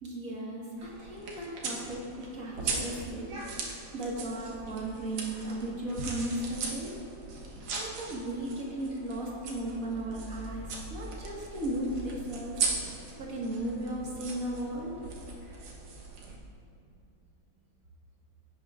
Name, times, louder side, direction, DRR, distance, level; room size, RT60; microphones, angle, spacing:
voice 1, 0.0-7.0 7.5-12.6 13.2-15.1, right 1 dB, 45° right, -4 dB, 2.0 m, -36 dB
sound 1, 0.8-16.3, right 4 dB, 85° right, 2.1 m, -39 dB
16.5 x 8.5 x 2.5 m, 2.5 s
omnidirectional pair, 2.2 m